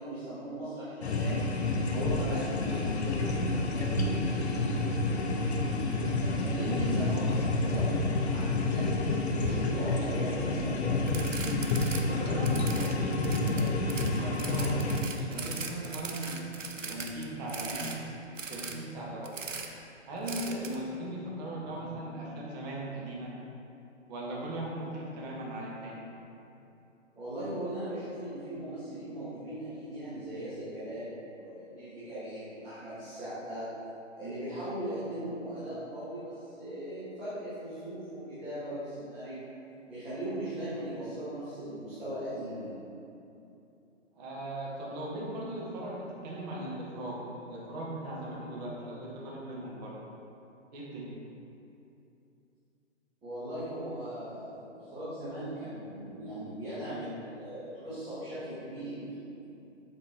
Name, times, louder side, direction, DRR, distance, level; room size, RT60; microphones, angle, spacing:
voice 1, 0.0-1.5 1.9-5.2 5.9-11.2 21.6-21.7 27.1-33.7 34.2-39.5 39.9-42.8 53.2-59.4, right 1 dB, 5° right, -17 dB, 0.4 m, -39 dB
sound 1, 1.0-15.0, left 2 dB, 55° left, 0.9 m, -29 dB
sound 2, 11.1-12.0 12.3-18.0 18.4-18.7 19.2-19.7 20.3-20.8, right 5 dB, 85° right, 0.8 m, -40 dB
voice 2, 12.1-14.8 15.1-18.0 18.4-19.3 20.1-23.3 24.1-26.0 44.1-50.0 50.7-51.1, right 1 dB, 35° right, -4 dB, 1.6 m, -38 dB
7.4 x 4.4 x 4.5 m, 2.8 s
figure-of-eight pair, 135°, 37 cm